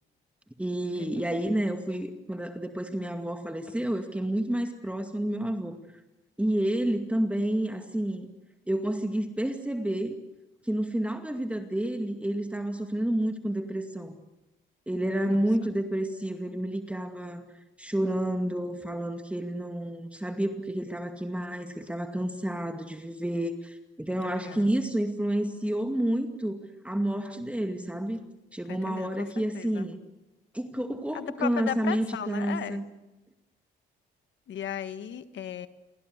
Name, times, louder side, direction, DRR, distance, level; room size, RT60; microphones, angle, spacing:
voice 1, 0.6-5.8 6.4-8.3 8.7-10.2 10.6-14.2 14.9-17.5 17.8-28.2 28.5-30.0 30.5-32.8, right 1 dB, 5° right, 5 dB, 2.3 m, -30 dB
voice 2, 24.2-24.7 28.7-29.9 31.1-32.8 34.5-35.7, left 9 dB, 70° left, 11 dB, 1.7 m, -36 dB
29.0 x 22.5 x 8.2 m, 1.0 s
cardioid pair, 90°, 20 cm